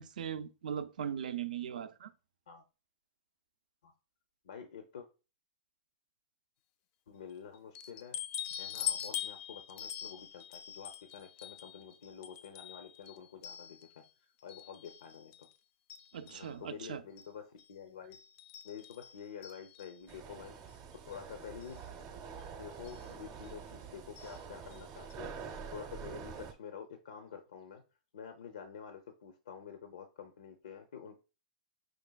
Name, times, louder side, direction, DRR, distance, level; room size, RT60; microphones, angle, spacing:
voice 1, 0.0-2.1 16.1-17.0, right 8 dB, 85° right, 0.4 m, -39 dB
voice 2, 4.4-5.1 7.1-8.2 8.6-14.0 14.4-15.5 16.3-18.2 18.6-20.6 21.1-21.9 22.6-25.3 25.7-27.8 28.1-31.2, left 7 dB, 90° left, 0.6 m, -48 dB
sound 1, 7.7-14.1 14.5-15.5 15.9-16.5 17.2-17.3 17.6-17.7 18.1-20.1 21.1-21.2 21.6-21.7 22.8-23.1 24.2-24.4 24.7-24.8 25.1-25.2, left 10 dB, 40° left, 0.3 m, -43 dB
sound 2, 20.1-26.5, right 6 dB, 35° right, 0.6 m, -46 dB
5.1 x 3.3 x 2.2 m
hypercardioid pair, 150°, 4 cm